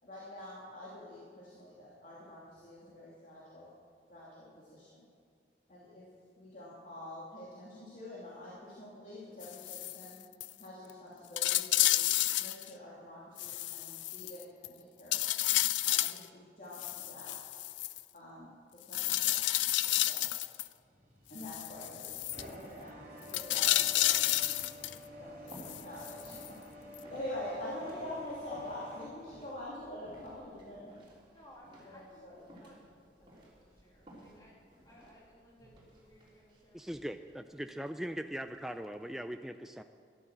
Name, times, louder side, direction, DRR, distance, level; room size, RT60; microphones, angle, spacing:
voice 1, 0.0-3.7 4.1-5.1 5.7-6.1 6.4-10.2 10.6-12.0 12.4-15.3 15.8-17.4 18.1-19.6 20.1-20.4 21.3-22.1 22.5-24.2 25.2-26.6 26.8-31.1 31.9-32.4, left 1 dB, 45° left, -7 dB, 2.9 m, -46 dB
sound 1, 9.4-10.1 10.4-10.5 10.9-11.0 11.4-12.7 13.4-14.7 15.1-16.2 16.7-18.0 18.9-20.7 21.4-22.4 23.3-25.0 25.5-26.5 27.0-27.1, left 15 dB, 85° left, 0.4 m, -31 dB
sound 2, 20.8-29.1, equal, 45° right, 3.2 m, -50 dB
sound 3, 25.3-39.1, equal, 25° right, 3.5 m, -58 dB
voice 2, 31.3-34.6 34.8-37.2, equal, 20° left, -4 dB, 2.9 m, -60 dB
voice 3, 36.7-39.8, equal, ahead, 7 dB, 0.3 m, -40 dB
13.5 x 12.0 x 7.5 m, 2.2 s
head